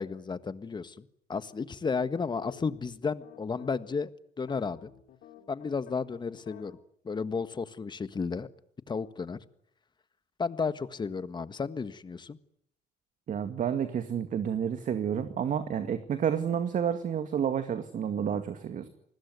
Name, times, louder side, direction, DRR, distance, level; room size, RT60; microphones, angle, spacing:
voice 1, 0.0-4.1 4.4-4.9 5.5-6.8 7.0-8.5 8.9-9.4 10.4-12.4, left 5 dB, 25° left, 12 dB, 1.6 m, -33 dB
sound 1, 2.1-3.9 4.4-6.7, left 10 dB, 70° left, 4.0 m, -51 dB
voice 2, 13.3-18.9, right 8 dB, 50° right, 9 dB, 2.2 m, -30 dB
28.5 x 20.5 x 9.6 m, 0.69 s
cardioid pair, 110°, 17 cm